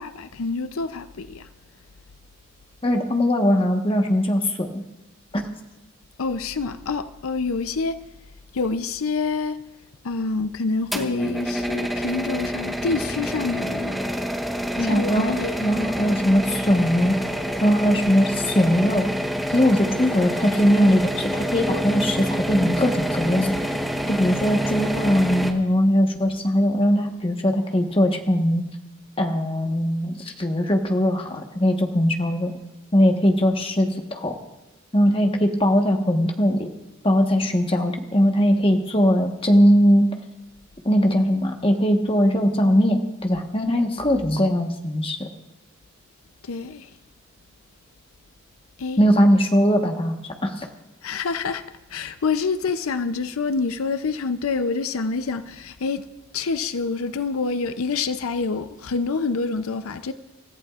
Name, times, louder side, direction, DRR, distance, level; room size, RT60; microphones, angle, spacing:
voice 1, 0.0-1.5 6.2-8.0 8.5-9.6 10.0-14.0 14.9-15.7 46.4-46.9 48.8-49.0 51.0-51.6 51.9-56.0 56.3-60.1, left 4 dB, 90° left, 0.6 m, -27 dB
voice 2, 2.8-4.8 5.3-5.5 14.8-15.3 15.6-17.2 17.6-19.1 19.5-23.5 24.1-28.6 29.2-32.5 32.9-34.3 34.9-36.7 37.0-40.1 40.8-45.3 49.0-50.2 50.4-50.7, equal, 25° left, 1.2 m, -20 dB
sound 1, 10.9-25.5, equal, ahead, 1.1 m, -27 dB
28.5 x 14.5 x 2.5 m
head